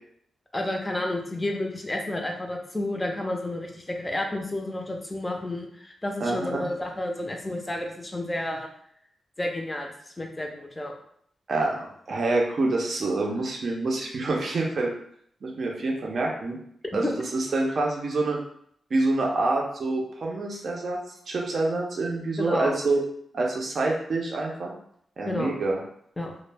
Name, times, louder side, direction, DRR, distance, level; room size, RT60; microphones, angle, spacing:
voice 1, 0.5-8.7 9.4-10.9 16.9-17.1 22.4-22.7 25.2-25.5 26.2-26.3, left 1 dB, 20° left, 2 dB, 0.5 m, -31 dB
voice 2, 6.2-6.7 11.5-14.9 15.4-16.6 16.9-18.4 18.9-21.0 21.3-23.0 23.3-24.7 25.2-25.7, right 2 dB, 55° right, -1 dB, 0.5 m, -26 dB
2.1 x 2.0 x 3.2 m, 0.67 s
cardioid pair, 90°, 0 cm